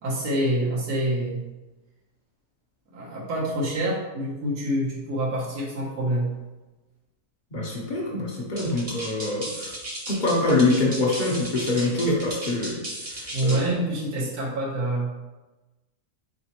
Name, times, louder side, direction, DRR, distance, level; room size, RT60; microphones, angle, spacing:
voice 1, 0.0-1.4 2.9-6.3 13.3-15.1, right 1 dB, 90° right, -5 dB, 1.4 m, -26 dB
voice 2, 7.5-9.7 10.1-13.6, left 2 dB, 45° left, -2 dB, 0.7 m, -25 dB
sound 1, 8.6-13.7, right 1 dB, 35° right, 0.6 m, -35 dB
4.0 x 3.4 x 2.8 m, 1.1 s
omnidirectional pair, 1.6 m